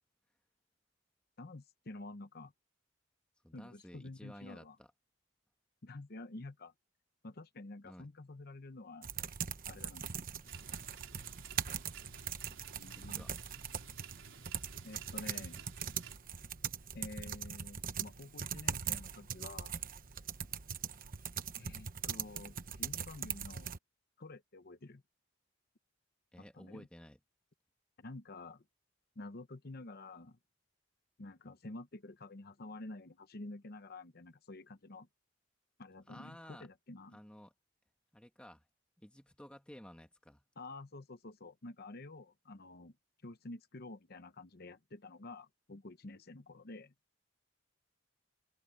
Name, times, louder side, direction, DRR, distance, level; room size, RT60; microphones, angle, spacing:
voice 1, 1.4-2.5 3.5-4.8 5.8-6.7 7.2-9.1 9.7-10.1 12.8-13.3 14.8-15.6 16.9-19.8 21.5-23.7 24.2-25.0 26.4-26.9 28.0-28.6 29.2-30.4 31.2-35.1 35.8-37.2 40.6-42.9 43.2-46.9, left 2 dB, 50° left, 0.9 m, -49 dB
voice 2, 3.4-4.9 7.8-8.1 12.9-13.4 26.3-27.2 36.1-36.7 37.1-37.5 38.1-38.6 39.0-40.4, equal, 5° left, 1.6 m, -54 dB
sound 1, 9.0-23.8, right 8 dB, 45° right, 1.0 m, -41 dB
sound 2, 10.4-16.2, right 6 dB, 75° right, 4.3 m, -53 dB
head